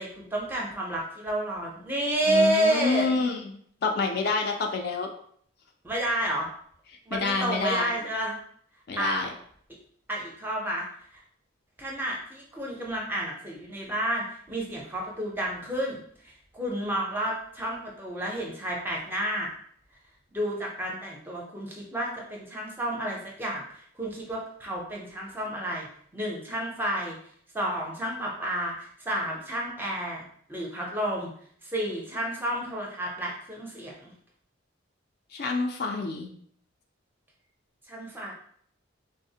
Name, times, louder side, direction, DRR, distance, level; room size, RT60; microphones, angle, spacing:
voice 1, 0.0-3.1 5.8-6.5 7.1-8.4 9.0-9.2 10.1-10.8 11.1-11.2 11.8-19.5 20.3-25.9 26.1-27.2 27.5-30.2 30.5-31.3 31.6-34.1 37.9-38.3, right 1 dB, 10° right, -2 dB, 0.5 m, -30 dB
voice 2, 2.3-5.1 7.1-7.9 8.9-9.3 35.3-36.3, left 4 dB, 50° left, 3 dB, 0.3 m, -28 dB
3.3 x 2.0 x 2.7 m, 0.62 s
head